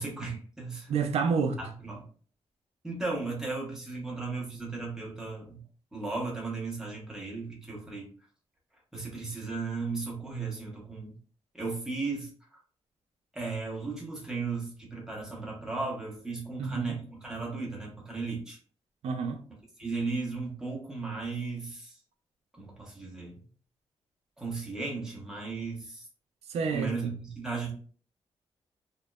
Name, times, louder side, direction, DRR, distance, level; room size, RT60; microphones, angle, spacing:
voice 1, 0.0-0.9 1.6-2.0 2.8-5.6 5.9-8.1 8.9-11.1 11.5-12.6 13.3-18.6 19.8-22.0 22.6-23.4 24.4-26.1 26.7-27.7, right 4 dB, 5° right, 0.8 m, -36 dB
voice 2, 0.9-1.6 16.6-17.0 19.0-19.4 26.5-27.1, right 5 dB, 70° right, 0.4 m, -29 dB
2.9 x 2.1 x 2.2 m
wide cardioid pair, 150°, 11 cm